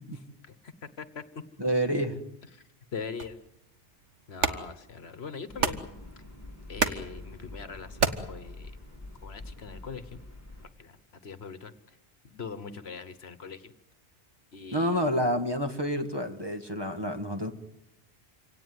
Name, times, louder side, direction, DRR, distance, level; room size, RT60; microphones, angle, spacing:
voice 1, 0.1-1.4 2.5-2.6 2.9-3.4 4.3-5.9 6.7-8.7 9.2-10.2 10.8-12.0 12.2-13.7 14.5-15.2, left 5 dB, 65° left, 13 dB, 1.4 m, -42 dB
voice 2, 1.6-2.2 14.7-17.5, equal, 20° right, 6 dB, 1.8 m, -28 dB
sound 1, 3.2-9.3, right 5 dB, 85° right, 1.6 m, -34 dB
sound 2, 5.5-10.7, left 2 dB, 15° left, 2.5 m, -46 dB
26.5 x 17.5 x 9.4 m, 0.87 s
omnidirectional pair, 1.2 m